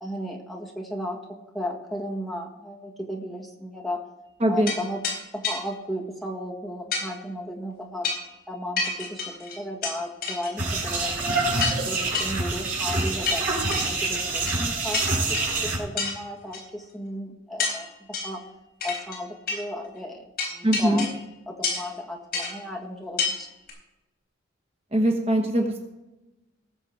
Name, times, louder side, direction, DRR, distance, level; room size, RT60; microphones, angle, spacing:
voice 1, 0.0-4.0 4.5-5.0 5.3-8.1 8.5-13.5 13.8-18.4 18.8-21.1 21.5-23.5, left 1 dB, ahead, -2 dB, 1.7 m, -35 dB
voice 2, 4.4-4.7 20.6-21.0 24.9-25.8, right 1 dB, 30° right, 3 dB, 1.0 m, -22 dB
sound 1, 4.7-4.8 5.0-5.2 5.4-5.6 6.9-7.1 8.0-8.3 8.8-9.9 10.2-10.8 11.1-11.2 11.6-11.8 12.1-12.3 13.2-13.9 14.5-14.7 14.9-15.6 16.0-16.1 16.5-16.6 17.6-17.8 18.1-18.4 18.8-19.2 19.5-19.6 20.4-21.2 21.6-21.9 22.3-22.5 23.2-23.3 23.7-23.8, left 4 dB, 50° left, 4.3 m, -28 dB
sound 2, 10.6-15.8, right 3 dB, 50° right, 4.5 m, -26 dB
19.5 x 6.8 x 4.6 m, 1.0 s
head